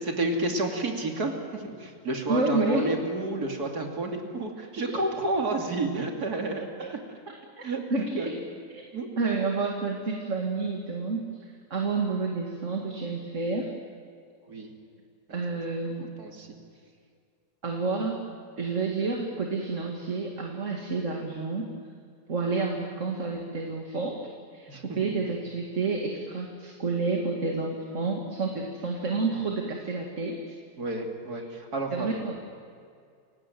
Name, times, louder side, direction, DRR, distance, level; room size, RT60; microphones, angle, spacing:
voice 1, 0.0-7.0 7.6-7.8 8.2-8.3 8.9-9.1 14.5-14.7 15.3-15.4 16.2-16.5 24.7-25.1 30.8-32.1, right 2 dB, 60° right, 2 dB, 3.2 m, -30 dB
voice 2, 2.3-3.0 4.8-5.0 7.9-8.4 8.7-8.8 9.2-11.3 11.7-13.7 15.3-16.1 17.6-18.2 18.6-21.7 22.3-24.2 24.5-30.6 31.9-32.4, right 3 dB, 45° right, 1 dB, 2.4 m, -29 dB
29.0 x 17.0 x 9.2 m, 2.2 s
omnidirectional pair, 1.9 m